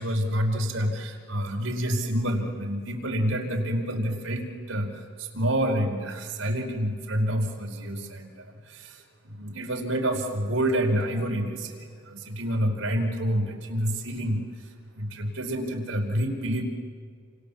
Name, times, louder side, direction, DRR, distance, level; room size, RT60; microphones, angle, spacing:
voice 1, 0.0-16.6, equal, 90° right, 2 dB, 4.7 m, -28 dB
29.0 x 28.0 x 7.1 m, 2.1 s
head